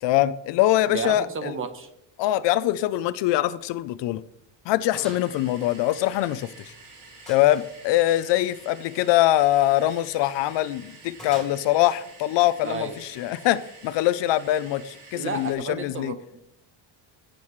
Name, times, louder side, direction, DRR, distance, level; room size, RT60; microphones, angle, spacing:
voice 1, 0.0-1.6 2.2-4.2 4.7-6.7 7.3-16.1, left 14 dB, 65° left, 0.6 m, -23 dB
voice 2, 0.9-1.9 12.6-12.9 15.1-16.4, right 4 dB, 25° right, 1.0 m, -32 dB
Gunshot gunfire, 3.1-3.3 3.7-3.8 4.3-4.4 4.9-5.3 5.6-6.6 7.3-7.8 9.4-9.7 11.2-11.9, equal, ahead, 3.7 m, -45 dB
sound 1, 5.0-15.5, right 3 dB, 55° right, 4.0 m, -48 dB
17.0 x 7.7 x 3.1 m
cardioid pair, 175°, 47 cm